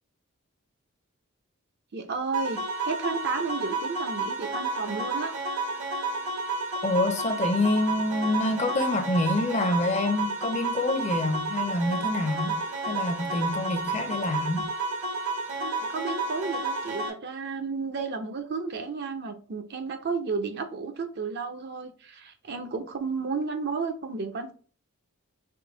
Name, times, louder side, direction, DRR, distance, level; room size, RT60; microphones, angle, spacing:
voice 1, 1.9-5.3 15.6-24.5, right 4 dB, 50° right, 0.6 m, -32 dB
sound 1, 2.3-17.1, right 2 dB, 75° right, 1.3 m, -31 dB
voice 2, 6.8-14.6, left 2 dB, 30° left, 0.6 m, -27 dB
3.7 x 2.7 x 3.8 m
head